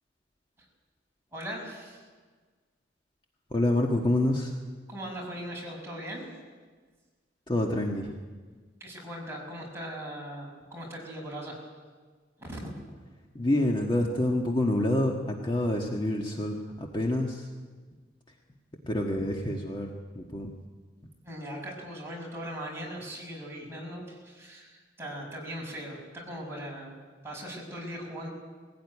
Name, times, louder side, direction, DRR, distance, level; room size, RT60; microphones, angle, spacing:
voice 1, 1.3-2.1 4.9-6.3 8.8-11.7 12.4-12.7 21.2-27.0 27.2-28.3, equal, 15° right, -3 dB, 6.3 m, -39 dB
voice 2, 3.5-4.5 7.5-8.1 13.3-17.5 18.8-20.5, left 1 dB, 25° left, 0 dB, 1.5 m, -27 dB
20.5 x 17.0 x 9.7 m, 1.5 s
head